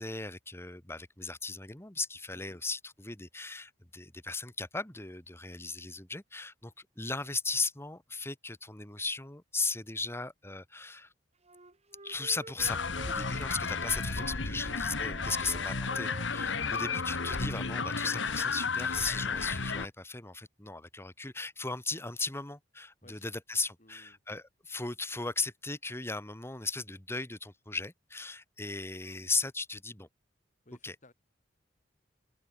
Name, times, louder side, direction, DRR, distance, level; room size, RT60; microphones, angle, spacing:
voice 1, 0.0-11.1 12.0-12.8 13.1-30.1 30.8-30.9, left 3 dB, 15° left, 1.7 m, -37 dB
Wind instrument woodwind instrument, 11.4-14.4 14.7-18.0, right 2 dB, 35° right, 5.8 m, -50 dB
sound 1, 12.6-19.9, left 4 dB, 90° left, 1.8 m, -33 dB
voice 2, 23.8-24.2 30.6-31.1, left 1 dB, 45° left, 6.5 m, -58 dB
open air
head